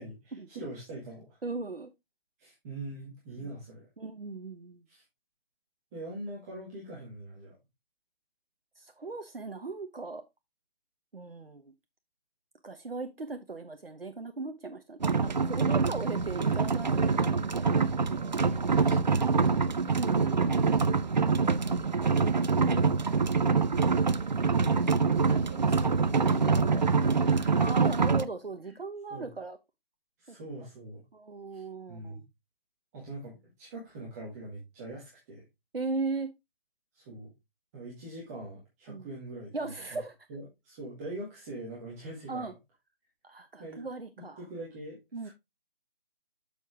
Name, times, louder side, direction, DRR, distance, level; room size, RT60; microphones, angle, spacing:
voice 1, 0.0-1.4 2.4-3.9 4.9-5.0 5.9-7.6 17.8-19.9 25.2-27.7 28.7-28.8 29.1-29.3 30.2-31.0 31.5-32.2 32.9-35.4 36.9-37.3 37.7-40.0 40.3-42.5 43.6-43.8 44.2-45.3, right 1 dB, 15° right, 1.9 m, -43 dB
voice 2, 1.4-1.9 3.4-3.5 4.0-4.8 8.8-10.2 11.1-11.6 12.6-17.5 19.9-20.7 27.6-29.6 30.3-30.4 31.1-32.2 35.7-36.3 38.9-39.1 39.5-40.1 42.3-42.5 43.2-44.4 45.1-45.3, right 3 dB, 70° right, 1.1 m, -38 dB
sound 1, 15.0-28.3, right 4 dB, 45° right, 0.5 m, -25 dB
7.0 x 6.3 x 3.5 m
figure-of-eight pair, 150°, 30 cm